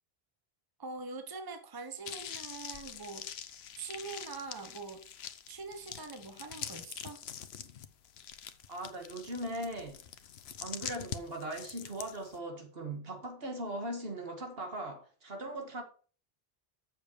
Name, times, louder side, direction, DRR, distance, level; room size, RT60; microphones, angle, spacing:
voice 1, 0.8-3.5 3.8-5.0 5.5-7.2, right 4 dB, 25° right, 0.9 m, -43 dB
sound 1, 2.0-12.4, left 9 dB, 85° left, 1.0 m, -45 dB
voice 2, 8.7-10.0 10.6-15.8, right 1 dB, 70° right, 2.1 m, -39 dB
7.3 x 6.9 x 4.7 m
omnidirectional pair, 1.0 m